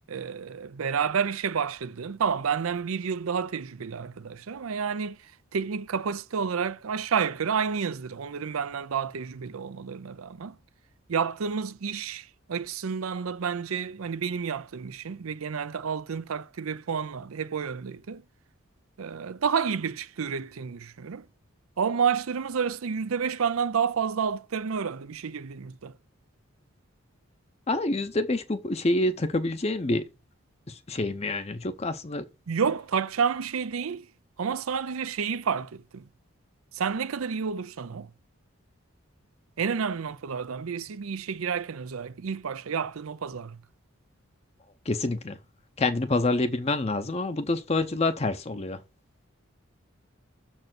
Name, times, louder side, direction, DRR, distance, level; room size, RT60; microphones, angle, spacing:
voice 1, 0.1-5.2 5.5-10.6 11.1-18.2 19.0-21.2 21.8-25.9 32.5-34.1 34.4-36.0 36.7-38.1 39.6-43.6, right 6 dB, 85° right, 0.5 m, -30 dB
voice 2, 27.7-30.1 30.7-32.2 44.9-45.4 45.8-48.8, left 2 dB, 30° left, 0.6 m, -27 dB
6.6 x 4.4 x 6.0 m
head